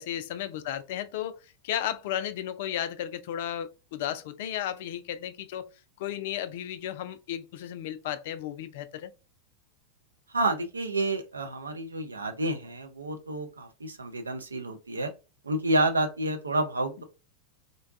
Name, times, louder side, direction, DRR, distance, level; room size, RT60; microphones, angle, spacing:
voice 1, 0.0-5.7 6.0-9.1, left 11 dB, 50° left, 0.3 m, -34 dB
voice 2, 10.3-15.1 15.4-17.0, right 2 dB, 75° right, 0.6 m, -29 dB
3.8 x 2.2 x 2.4 m
figure-of-eight pair, 90°, 0 cm